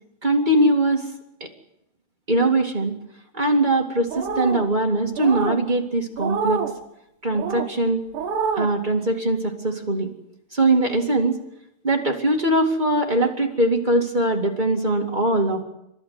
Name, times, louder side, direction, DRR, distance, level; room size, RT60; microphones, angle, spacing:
voice 1, 0.2-1.1 1.4-1.5 2.3-2.9 3.3-6.6 7.2-8.0 8.5-10.1 10.5-11.4 11.8-15.6, right 1 dB, 40° right, 1 dB, 0.6 m, -21 dB
sound 1, 4.1-4.7 5.2-5.6 6.2-6.7 7.3-7.7 8.1-8.7, right 5 dB, 65° right, 4.2 m, -26 dB
30.0 x 13.0 x 9.7 m, 0.84 s
omnidirectional pair, 5.3 m